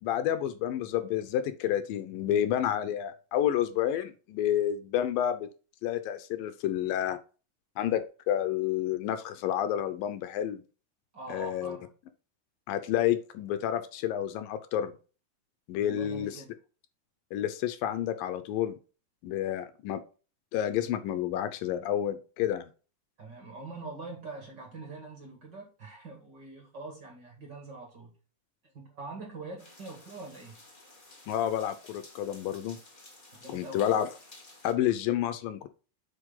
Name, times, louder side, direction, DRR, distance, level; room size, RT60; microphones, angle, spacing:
voice 1, 0.0-5.5 5.8-7.2 7.8-10.6 11.3-11.8 12.7-14.9 15.7-16.4 17.3-18.8 19.2-20.0 20.5-22.7 31.3-32.8 33.5-34.1 34.6-35.7, left 11 dB, 80° left, 11 dB, 2.4 m, -29 dB
voice 2, 11.1-11.9 15.8-16.5 23.2-28.1 28.6-30.6 33.3-34.0, right 3 dB, 35° right, 0 dB, 2.2 m, -44 dB
sound 1, 29.6-34.7, left 2 dB, 30° left, 1.0 m, -54 dB
8.4 x 5.4 x 3.8 m, 0.34 s
omnidirectional pair, 4.1 m